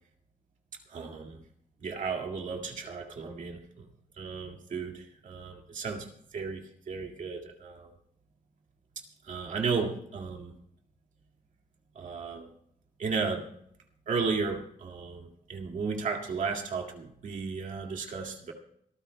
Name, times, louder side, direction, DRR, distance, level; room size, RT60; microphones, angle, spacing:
voice 1, 0.9-1.4 1.8-3.9 4.2-6.1 6.3-7.9 9.2-10.5 12.0-12.5 13.0-13.5 14.1-18.5, right 5 dB, 65° right, 2 dB, 2.2 m, -34 dB
26.0 x 14.0 x 2.3 m, 0.69 s
wide cardioid pair, 170°, 14 cm